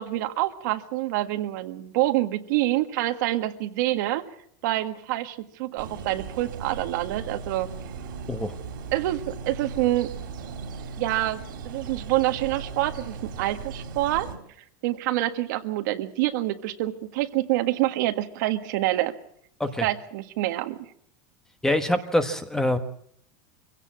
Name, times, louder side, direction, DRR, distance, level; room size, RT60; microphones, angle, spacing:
voice 1, 0.0-4.2 4.6-7.7 8.9-10.1 11.0-11.4 11.7-14.3 14.8-19.1 19.8-20.8, right 16 dB, 65° right, 8 dB, 1.7 m, -26 dB
sound 1, 5.8-14.3, right 5 dB, 90° right, 3.8 m, -37 dB
voice 2, 21.6-22.8, left 1 dB, 5° left, 9 dB, 1.2 m, -24 dB
24.5 x 16.5 x 7.5 m, 0.68 s
supercardioid pair, 155°, 11 cm